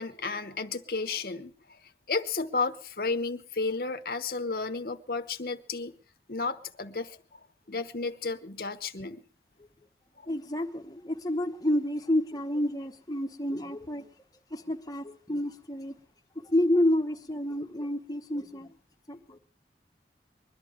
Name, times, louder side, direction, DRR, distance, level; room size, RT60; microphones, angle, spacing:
voice 1, 0.0-1.8 2.1-5.9 6.3-9.2, left 4 dB, 55° left, 1.0 m, -33 dB
voice 2, 10.3-14.1 14.5-15.9 16.3-18.7 19.1-19.4, left 1 dB, 20° left, 1.2 m, -29 dB
21.5 x 11.5 x 5.0 m
head